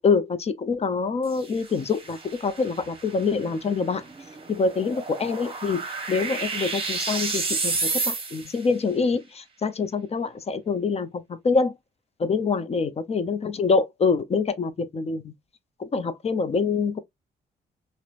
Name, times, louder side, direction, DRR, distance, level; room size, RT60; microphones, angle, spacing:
voice 1, 0.0-4.0 4.5-5.8 6.1-11.8 12.2-15.3 15.8-17.0, left 4 dB, 35° left, 0.5 m, -25 dB
sound 1, 1.2-8.7, right 4 dB, 30° right, 0.8 m, -32 dB
2.9 x 2.1 x 2.4 m
cardioid pair, 75°, 18 cm